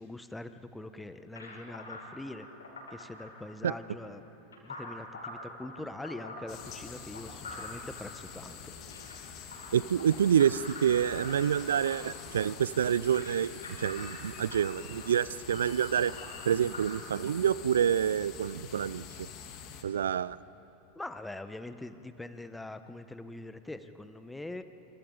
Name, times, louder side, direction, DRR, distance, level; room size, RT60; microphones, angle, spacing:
voice 1, 0.0-2.5 2.9-4.2 4.6-8.7 20.9-24.6, left 2 dB, 10° left, 10 dB, 1.2 m, -43 dB
sound 1, 1.4-16.9, left 2 dB, 85° left, 6.2 m, -46 dB
sound 2, 6.5-19.8, left 7 dB, 45° left, 2.9 m, -46 dB
voice 2, 9.7-13.5 13.8-16.1 16.5-19.3 19.8-20.4, right 8 dB, 80° right, 20 dB, 0.4 m, -27 dB
27.0 x 26.5 x 4.0 m, 3.0 s
hypercardioid pair, 85°, 0 cm